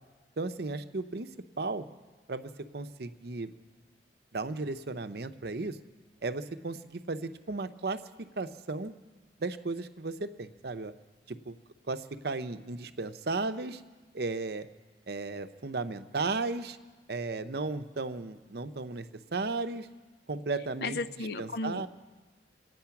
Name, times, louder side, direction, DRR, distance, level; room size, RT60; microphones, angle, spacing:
voice 1, 0.4-1.3 1.6-1.8 2.3-3.5 4.3-5.8 6.2-8.0 8.4-8.9 9.4-10.9 11.3-11.6 11.9-13.8 14.1-14.7 15.1-16.8 17.1-19.1 19.3-19.9 20.3-21.0 21.4-21.9, right 3 dB, 60° right, 10 dB, 0.7 m, -35 dB
voice 2, 20.8-21.9, left 3 dB, 60° left, 13 dB, 0.5 m, -34 dB
26.5 x 9.2 x 5.9 m, 1.3 s
head